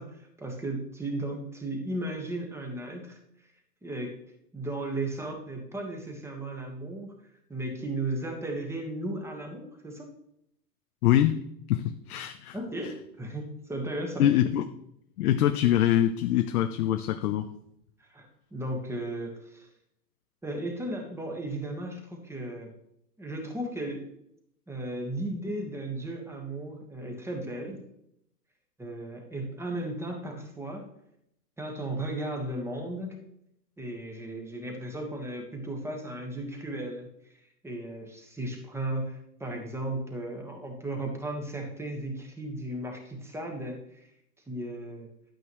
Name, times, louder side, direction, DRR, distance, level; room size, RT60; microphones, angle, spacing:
voice 1, 0.0-3.2 3.8-4.1 4.5-7.1 7.5-10.1 12.5-14.3 18.0-19.7 20.4-22.7 23.2-24.1 24.7-27.8 28.8-30.8 31.6-33.2 33.8-37.1 37.6-44.1 44.5-45.1, right 1 dB, 5° right, 1.4 m, -35 dB
voice 2, 11.0-12.6 14.2-14.7 15.2-17.5, left 12 dB, 60° left, 0.8 m, -24 dB
10.5 x 9.0 x 3.1 m
hypercardioid pair, 140°, 49 cm